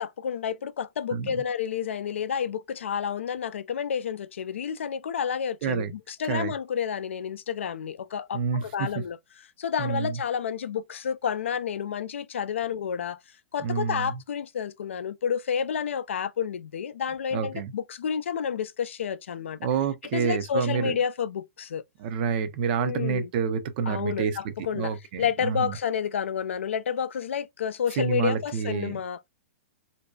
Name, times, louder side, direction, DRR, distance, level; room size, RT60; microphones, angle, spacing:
voice 1, 0.0-9.2 9.6-13.2 13.5-19.6 20.1-21.8 22.8-23.3 23.9-29.2, left 7 dB, 70° left, 0.3 m, -30 dB
voice 2, 1.1-1.4 5.6-5.9 6.3-6.5 8.3-9.0 9.8-10.2 13.6-14.2 17.3-17.7 19.6-21.0 22.0-25.7 28.0-29.0, right 6 dB, 45° right, 0.4 m, -28 dB
2.6 x 2.2 x 2.2 m
figure-of-eight pair, 105°, 7 cm